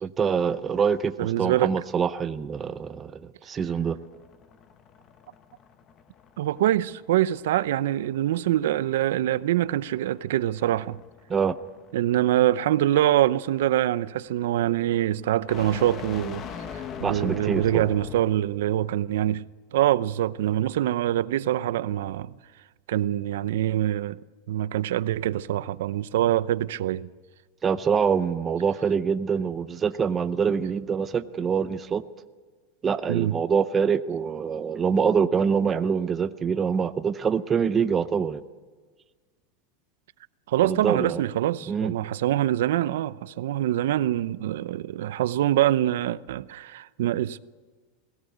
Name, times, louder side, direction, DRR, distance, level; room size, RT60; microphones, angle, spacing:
voice 1, 0.0-4.0 11.3-11.6 17.0-17.9 27.6-32.0 32.8-38.4 40.6-41.2 41.7-41.9, right 6 dB, 15° right, 0.6 m, -25 dB
voice 2, 1.2-1.7 6.4-11.0 11.9-16.4 16.7-19.4 19.7-22.3 22.9-24.2 24.5-27.1 33.1-33.4 40.5-47.4, right 13 dB, 80° right, 0.7 m, -24 dB
sound 1, 3.9-18.5, left 7 dB, 25° left, 1.2 m, -42 dB
21.0 x 17.0 x 9.3 m
supercardioid pair, 165°, 0 cm